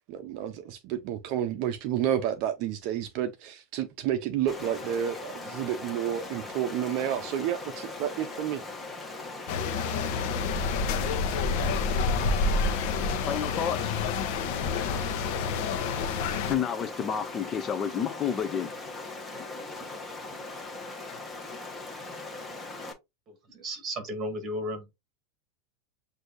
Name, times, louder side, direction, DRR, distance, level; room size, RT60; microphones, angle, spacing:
voice 1, 0.1-8.6, right 10 dB, 50° right, 0.6 m, -30 dB
Stream, 4.5-22.9, left 2 dB, 5° left, 1.2 m, -40 dB
sound 1, 9.5-16.6, left 4 dB, 55° left, 0.8 m, -28 dB
voice 2, 13.3-13.9 16.5-18.7, left 8 dB, 25° left, 0.5 m, -30 dB
voice 3, 23.3-24.9, equal, 25° right, 1.7 m, -34 dB
7.9 x 2.7 x 2.5 m
supercardioid pair, 145°, 0 cm